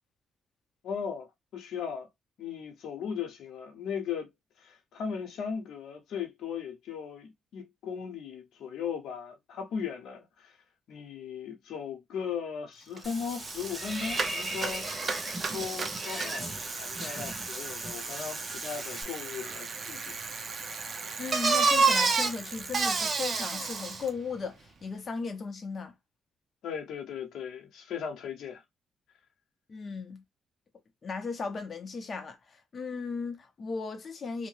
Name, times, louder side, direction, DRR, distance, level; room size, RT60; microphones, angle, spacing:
voice 1, 0.8-2.1 2.4-4.3 4.6-10.6 10.9-14.9 15.5-20.2 26.6-28.6, left 7 dB, 75° left, 0.7 m, -37 dB
Water / Bathtub (filling or washing), 13.0-19.0, right 1 dB, 15° right, 1.1 m, -38 dB
Bicycle, 13.0-13.1 13.3-24.1, right 4 dB, 40° right, 0.6 m, -31 dB
voice 2, 21.2-25.9 29.7-30.2 31.0-34.5, left 5 dB, 40° left, 0.6 m, -36 dB
2.7 x 2.0 x 3.1 m
cardioid pair, 90°, 0 cm